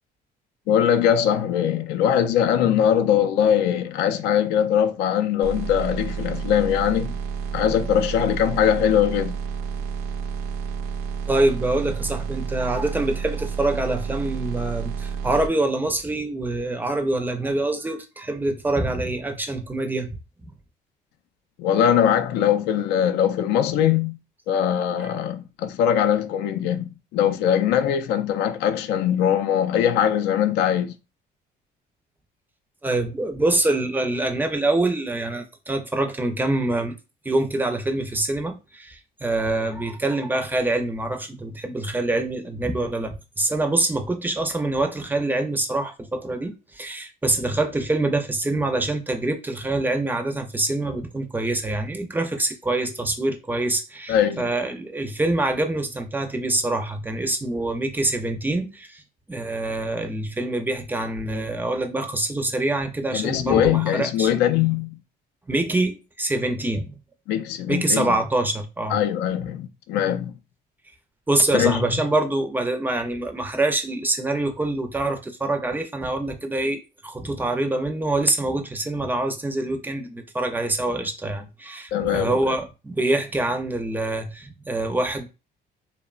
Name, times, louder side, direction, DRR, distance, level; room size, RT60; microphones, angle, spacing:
voice 1, 0.7-7.1 7.5-9.4 21.6-24.2 24.5-30.9 54.1-54.4 63.1-65.0 67.3-68.1 68.9-70.3 71.5-71.8 81.9-82.4, left 9 dB, 85° left, 0.4 m, -21 dB
sound 1, 5.4-15.5, right 6 dB, 75° right, 0.4 m, -30 dB
voice 2, 11.3-20.1 20.4-20.5 25.0-25.1 32.8-37.0 37.2-59.0 59.3-64.3 65.5-67.0 67.7-69.0 71.3-85.3, right 2 dB, 10° right, 0.4 m, -25 dB
2.9 x 2.1 x 2.3 m
cardioid pair, 110°, 17 cm